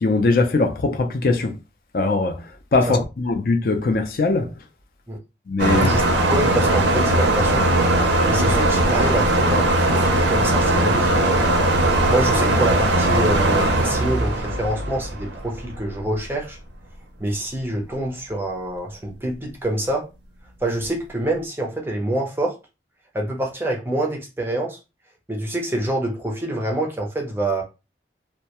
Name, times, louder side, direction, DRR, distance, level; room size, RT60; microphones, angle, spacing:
voice 1, 0.0-1.5 1.9-2.4 2.7-4.5 5.5-5.9, left 3 dB, 55° left, 0.4 m, -20 dB
sound 1, 5.6-15.8, right 1 dB, 80° right, 0.5 m, -19 dB
voice 2, 5.7-7.6 8.3-11.4 12.1-16.6 17.2-20.1 20.6-22.6 23.1-24.8 25.3-27.6, right 1 dB, 10° right, 0.5 m, -26 dB
2.2 x 2.1 x 2.8 m
head